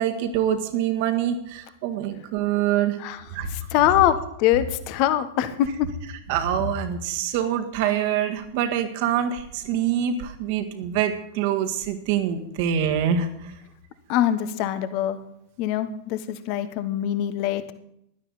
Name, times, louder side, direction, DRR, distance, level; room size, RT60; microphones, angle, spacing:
voice 1, 0.0-3.0 3.3-3.6 6.3-13.5, right 9 dB, 50° right, 6 dB, 1.7 m, -25 dB
voice 2, 3.5-5.9 14.1-15.2 15.6-17.7, left 12 dB, 45° left, 12 dB, 1.1 m, -23 dB
16.5 x 12.0 x 4.1 m, 0.77 s
figure-of-eight pair, 90°, 0 cm